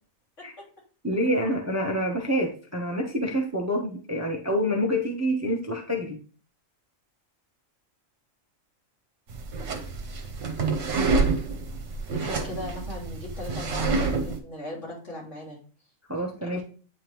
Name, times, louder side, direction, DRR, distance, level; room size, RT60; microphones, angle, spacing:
voice 1, 1.0-6.2 16.1-16.6, equal, 15° right, 1 dB, 0.8 m, -27 dB
sound 1, 9.3-14.4, right 4 dB, 65° right, 1.3 m, -28 dB
voice 2, 12.1-15.6 16.5-16.6, left 1 dB, 60° left, -6 dB, 3.5 m, -38 dB
9.1 x 3.6 x 3.0 m, 0.39 s
omnidirectional pair, 1.4 m